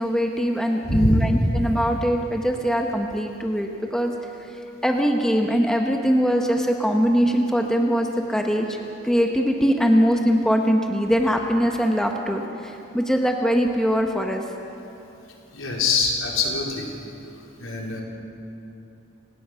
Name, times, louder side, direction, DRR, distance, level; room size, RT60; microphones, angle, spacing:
voice 1, 0.0-4.1 4.8-8.8 9.0-14.4, equal, 5° left, 2 dB, 1.3 m, -22 dB
voice 2, 0.8-1.3 15.5-16.9 17.6-18.0, left 2 dB, 80° left, -1 dB, 4.2 m, -23 dB
29.0 x 18.5 x 6.4 m, 2.8 s
head